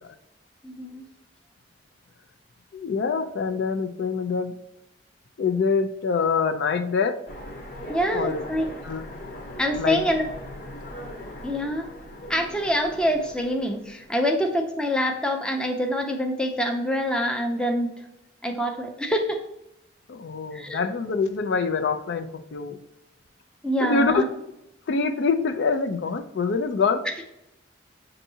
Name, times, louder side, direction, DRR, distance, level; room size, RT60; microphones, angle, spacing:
voice 1, 0.6-1.0 7.9-8.6 9.6-10.3 11.4-11.9 12.3-17.9 18.4-19.4 20.5-20.8 23.6-24.2, equal, 5° left, 2 dB, 0.5 m, -25 dB
voice 2, 2.7-4.5 5.4-7.2 8.1-8.4 8.8-9.3 9.8-10.1 20.1-22.8 23.8-24.2 24.9-27.0, left 4 dB, 70° left, 7 dB, 0.4 m, -25 dB
Train, 7.3-14.2, left 1 dB, 45° left, 0.9 m, -39 dB
6.5 x 2.7 x 2.7 m, 0.86 s
head